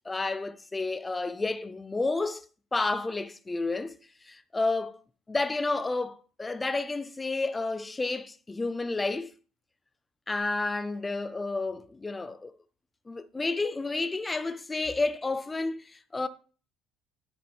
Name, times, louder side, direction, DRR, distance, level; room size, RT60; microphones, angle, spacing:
voice 1, 0.1-2.4 2.7-4.0 4.3-5.0 5.3-9.3 10.3-12.5 13.1-16.3, left 3 dB, 10° left, 0.5 m, -30 dB
10.5 x 3.5 x 6.0 m
cardioid pair, 155°, 0 cm